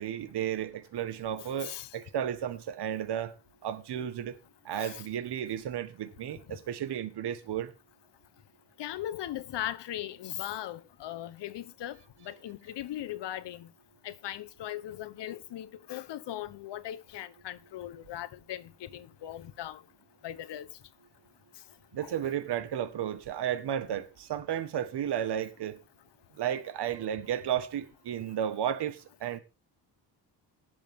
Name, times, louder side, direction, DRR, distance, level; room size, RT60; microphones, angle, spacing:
voice 1, 0.0-3.4 3.6-4.3 4.6-7.7 21.9-25.8 26.4-29.4, right 10 dB, 65° right, 1.6 m, -33 dB
voice 2, 1.4-1.9 4.7-5.0 8.8-12.0 12.2-13.7 14.0-19.8 20.2-20.7 22.0-22.1, left 12 dB, 70° left, 1.1 m, -39 dB
18.5 x 7.2 x 3.7 m
cardioid pair, 100°, 44 cm